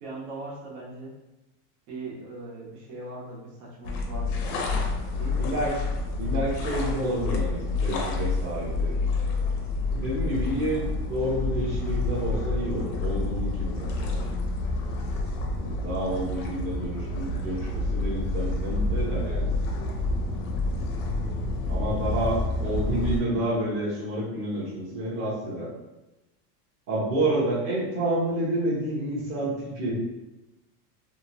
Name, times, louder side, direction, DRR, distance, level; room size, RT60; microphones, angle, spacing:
voice 1, 0.0-1.1 1.9-4.5 5.1-5.5, right 2 dB, 75° right, -5 dB, 1.1 m, -39 dB
sound 1, 3.8-23.2, left 2 dB, 65° left, 0.7 m, -28 dB
voice 2, 5.3-5.9 6.2-8.9 9.9-14.3 15.6-19.5 21.7-25.7 26.9-30.0, right 1 dB, 30° right, -7 dB, 0.8 m, -29 dB
2.8 x 2.2 x 2.6 m, 1.0 s
supercardioid pair, 150°, 46 cm